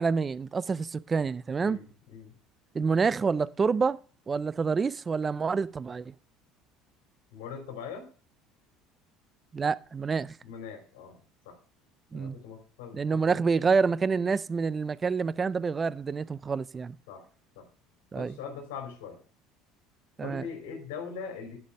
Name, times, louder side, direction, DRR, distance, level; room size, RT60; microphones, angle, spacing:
voice 1, 0.0-1.8 2.7-4.0 4.3-6.1 9.5-10.3 12.1-12.4 12.9-16.9 18.1-18.3 20.2-20.4, right 5 dB, 25° right, 0.4 m, -27 dB
voice 2, 1.6-2.3 7.3-8.1 10.4-11.2 11.4-11.6 12.1-13.4 17.1-17.2 17.5-17.7 18.1-19.2 20.2-21.6, left 6 dB, 85° left, 3.1 m, -41 dB
11.5 x 5.3 x 5.2 m
supercardioid pair, 110°, 0 cm